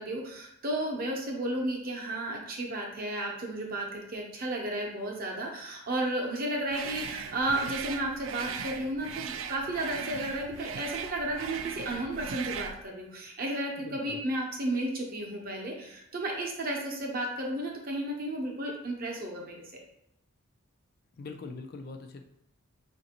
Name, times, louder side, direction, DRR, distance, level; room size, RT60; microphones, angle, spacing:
voice 1, 0.0-19.7, right 1 dB, 40° right, 0 dB, 0.7 m, -33 dB
sound 1, 6.7-12.8, right 7 dB, 65° right, 0.3 m, -39 dB
voice 2, 13.8-14.2 21.2-22.2, left 3 dB, 45° left, 5 dB, 0.3 m, -42 dB
4.9 x 2.6 x 2.9 m, 0.79 s
head